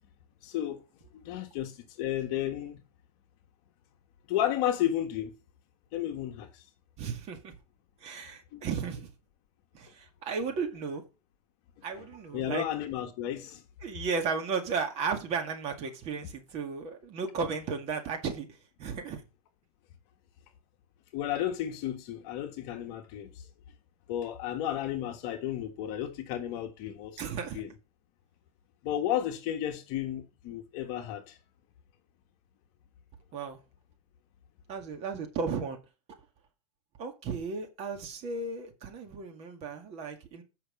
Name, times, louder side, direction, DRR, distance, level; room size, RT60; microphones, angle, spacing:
voice 1, 0.4-0.8 1.1-2.8 4.3-5.3 5.9-6.6 8.5-8.6 12.3-13.6 21.1-23.3 24.1-27.2 27.5-27.7 28.8-31.4, left 11 dB, 40° left, 1.5 m, -33 dB
voice 2, 7.0-7.6 8.0-9.1 9.7-11.0 11.8-12.6 13.8-18.5 18.8-19.2 27.2-27.6 33.3-33.6 34.7-35.8 37.0-40.4, right 5 dB, 30° right, 2.0 m, -34 dB
8.0 x 5.8 x 5.3 m
supercardioid pair, 145°, 20 cm